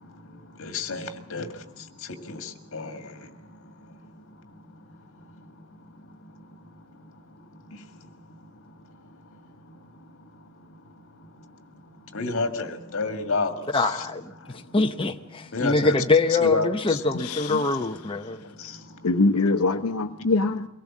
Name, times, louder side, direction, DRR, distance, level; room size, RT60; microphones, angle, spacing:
voice 1, 0.6-1.5 2.3-3.1 12.1-14.1 15.5-16.0 16.3-17.0 18.6-18.7, left 3 dB, 65° left, 1.9 m, -29 dB
voice 2, 13.7-18.4, left 3 dB, 25° left, 0.7 m, -24 dB
voice 3, 17.1-17.8 19.0-20.7, left 3 dB, 85° left, 0.8 m, -24 dB
24.0 x 17.5 x 7.3 m
head